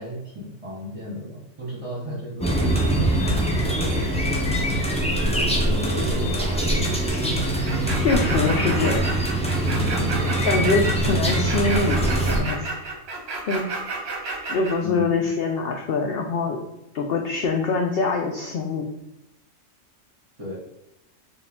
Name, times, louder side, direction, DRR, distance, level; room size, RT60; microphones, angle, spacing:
voice 1, 0.0-2.7 3.8-4.8 5.2-7.0 8.1-8.6 9.9-10.3 14.8-15.3 20.4-20.6, left 1 dB, 25° right, -5 dB, 1.2 m, -35 dB
sound 1, 2.4-12.4, right 1 dB, 10° left, 0.3 m, -23 dB
sound 2, 7.7-14.8, right 3 dB, 55° right, 1.0 m, -31 dB
voice 2, 8.0-9.1 10.3-12.7 13.5-13.7 14.5-16.6 16.9-18.9, left 3 dB, 65° left, 1 dB, 0.6 m, -24 dB
4.5 x 2.5 x 3.5 m, 0.88 s
omnidirectional pair, 1.4 m